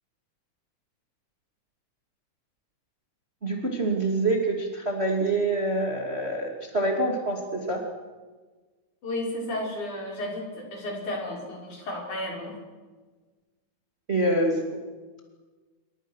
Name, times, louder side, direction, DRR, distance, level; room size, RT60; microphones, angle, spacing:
voice 1, 3.4-7.8 14.1-14.6, right 2 dB, 20° right, 1 dB, 2.6 m, -26 dB
voice 2, 9.0-12.6, left 1 dB, 60° left, -1 dB, 7.3 m, -33 dB
28.5 x 23.5 x 6.5 m, 1.3 s
omnidirectional pair, 3.9 m